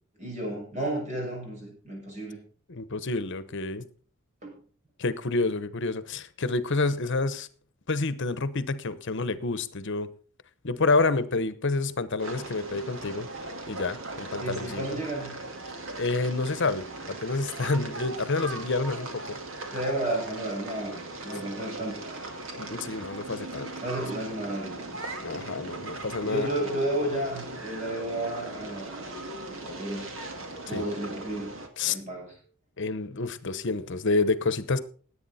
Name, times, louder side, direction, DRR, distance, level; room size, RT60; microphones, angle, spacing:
voice 1, 0.2-2.4 4.4-4.5 14.4-15.4 19.7-22.0 23.8-25.0 26.2-29.1 29.6-30.0 30.6-31.5 31.8-32.3, right 1 dB, 35° right, 0 dB, 6.5 m, -32 dB
voice 2, 2.7-3.8 5.0-7.5 7.9-10.1 10.6-13.3 13.7-15.0 16.0-19.4 22.6-23.7 25.2-26.5 30.7-30.8 31.8-32.0 32.8-34.8, left 3 dB, 60° left, 14 dB, 1.0 m, -28 dB
sound 1, 12.2-31.7, right 2 dB, 65° right, 2.2 m, -39 dB
18.0 x 8.7 x 4.2 m, 0.43 s
head